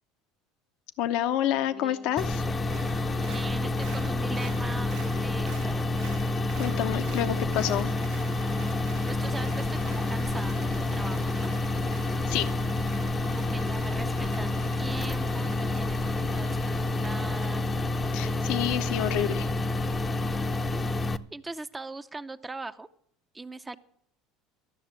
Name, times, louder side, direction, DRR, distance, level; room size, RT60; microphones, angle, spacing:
voice 1, 1.0-2.4 6.6-8.0 12.3-12.5 18.1-19.5, left 12 dB, 70° left, 10 dB, 0.8 m, -28 dB
voice 2, 1.5-2.4 3.2-6.0 9.1-11.5 13.3-17.7 20.3-20.4 21.3-22.9 23.3-23.8, right 3 dB, 15° right, 10 dB, 0.6 m, -41 dB
sound 1, 2.2-21.2, left 2 dB, 25° left, 0.7 m, -28 dB
Applause, 2.6-19.2 19.5-19.6, right 11 dB, 70° right, 1.0 m, -50 dB
13.0 x 6.5 x 8.9 m, 0.68 s
supercardioid pair, 95°, 0 cm